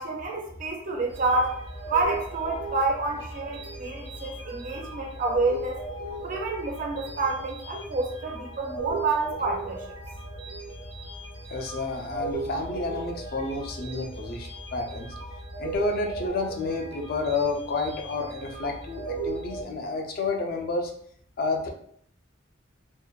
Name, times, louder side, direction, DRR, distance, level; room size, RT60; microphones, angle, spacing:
voice 1, 0.0-1.6 1.9-5.8 6.2-9.9, right 3 dB, 45° right, 0 dB, 0.4 m, -28 dB
sound 1, 1.1-19.6, right 2 dB, 80° right, 0.8 m, -37 dB
voice 2, 11.5-15.1 15.6-20.9 21.4-21.7, left 3 dB, 50° left, 2 dB, 0.4 m, -30 dB
2.5 x 2.1 x 2.3 m, 0.65 s
head